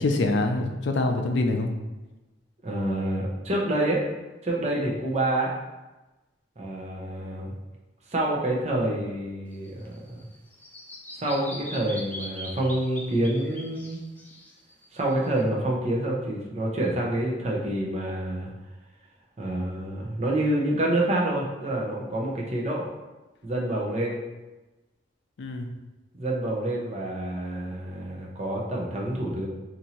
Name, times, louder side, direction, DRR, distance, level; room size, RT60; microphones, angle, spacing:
voice 1, 0.0-1.7 25.4-25.7, left 2 dB, 75° left, 4 dB, 0.4 m, -25 dB
voice 2, 2.6-4.0 4.4-5.5 6.6-7.5 8.1-10.2 11.2-14.0 14.9-18.5 19.4-22.9 23.4-24.2 26.1-29.5, right 1 dB, 35° right, -2 dB, 0.6 m, -27 dB
Bird vocalization bird call bird song, 9.5-15.4, left 1 dB, 10° left, 0.4 m, -42 dB
2.8 x 2.6 x 4.2 m, 1.1 s
head